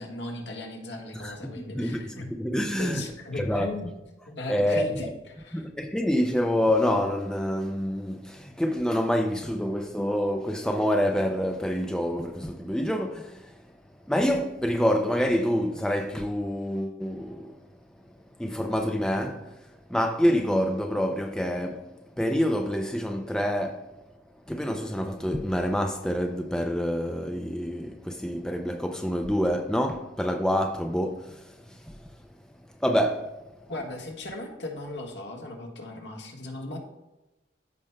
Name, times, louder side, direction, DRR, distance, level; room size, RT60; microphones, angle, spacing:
voice 1, 0.0-2.3 2.8-3.9 4.2-5.7 33.7-36.8, left 1 dB, 65° left, 1.5 m, -37 dB
voice 2, 1.2-3.0 3.4-3.7 4.5-4.8 5.5-13.4 14.1-17.5 18.4-19.4 19.9-21.9 22.2-23.8 24.5-31.2 32.8-33.3, equal, 5° left, 0.4 m, -27 dB
14.0 x 5.8 x 2.2 m
head